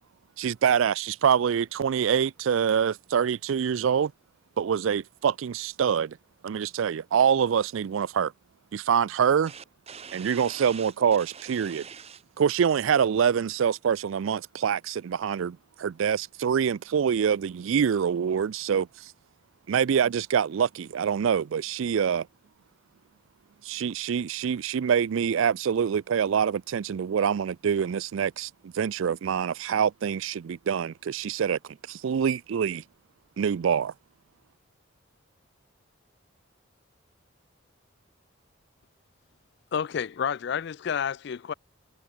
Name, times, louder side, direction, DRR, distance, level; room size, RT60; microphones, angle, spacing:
voice 1, 0.4-4.1 4.6-6.2 6.4-8.3 8.7-9.5 10.1-11.8 12.4-18.9 19.7-22.3 23.6-31.6 31.9-32.8 33.4-33.9, right 7 dB, 70° right, 0.4 m, -25 dB
voice 2, 9.5-12.2, right 7 dB, 30° right, 0.8 m, -44 dB
voice 3, 39.7-41.5, left 7 dB, 55° left, 0.4 m, -30 dB
head